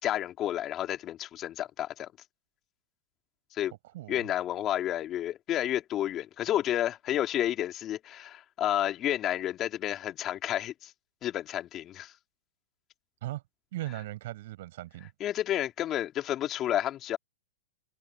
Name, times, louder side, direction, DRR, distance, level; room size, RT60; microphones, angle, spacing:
voice 1, 0.0-2.1 3.5-3.7 4.1-10.9 11.2-12.1 15.2-17.2, left 12 dB, 30° left, 3.4 m, -31 dB
voice 2, 13.7-15.1, right 16 dB, 60° right, 7.8 m, -38 dB
hypercardioid pair, 110°, 0 cm